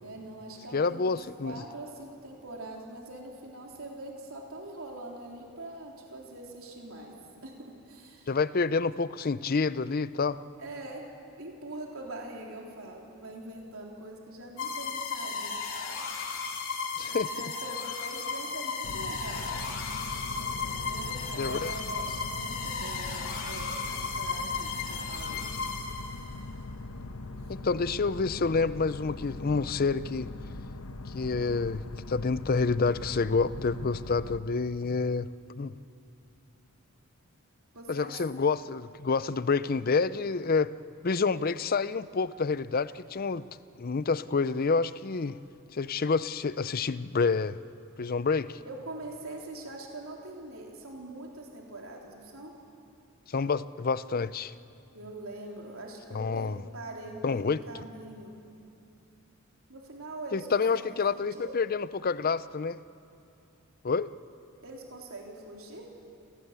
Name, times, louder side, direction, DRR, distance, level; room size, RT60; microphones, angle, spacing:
voice 1, 0.0-1.2 1.4-7.1 7.4-7.5 7.9-8.3 10.6-11.0 11.4-15.5 17.1-19.6 20.4-25.5 37.7-38.1 48.7-52.6 54.9-58.3 59.7-61.6 64.6-65.9, right 2 dB, 70° right, -1 dB, 3.8 m, -43 dB
voice 2, 0.7-1.6 8.3-10.4 17.0-17.3 21.4-21.8 27.5-30.3 31.1-35.3 35.6-35.7 37.9-40.7 41.0-43.4 43.8-45.4 45.7-47.6 48.0-48.6 53.3-54.5 56.1-56.6 57.2-57.6 60.3-62.8 63.8-64.1, left 4 dB, 40° left, 16 dB, 0.5 m, -28 dB
sound 1, 14.6-26.4, left 5 dB, 60° left, 3.3 m, -35 dB
sound 2, 18.8-34.4, left 2 dB, 80° left, 1.1 m, -41 dB
28.0 x 18.0 x 8.2 m, 2.6 s
head